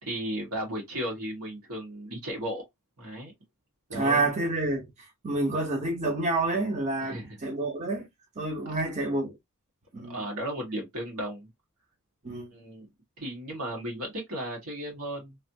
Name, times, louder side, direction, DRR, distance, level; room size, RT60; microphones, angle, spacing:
voice 1, 0.0-2.6 3.0-3.3 3.9-4.3 7.0-7.4 10.1-11.5 12.5-12.9 13.2-15.4, equal, 85° right, 1.7 m, -35 dB
voice 2, 3.9-8.1 8.4-9.4 9.9-10.3 12.2-12.5, right 2 dB, 35° right, 0.9 m, -28 dB
3.2 x 2.7 x 2.8 m
head